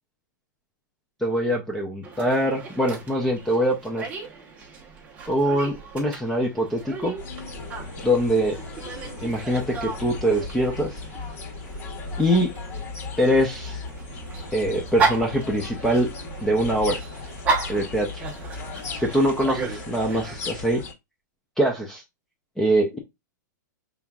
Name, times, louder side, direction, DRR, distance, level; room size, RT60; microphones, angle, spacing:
voice 1, 1.2-4.1 5.3-7.1 8.0-8.6 9.2-11.0 12.2-12.5 13.2-13.8 14.5-16.1 16.4-17.0 17.7-18.2 19.0-20.8 21.6-22.0 22.6-23.0, equal, 5° left, 0 dB, 0.5 m, -23 dB
Dog, 2.0-20.3, right 4 dB, 15° right, 0.9 m, -34 dB
sound 1, 7.2-20.9, left 3 dB, 50° left, 2.2 m, -36 dB
5.6 x 3.4 x 2.3 m, 0.21 s
hypercardioid pair, 170°, 10 cm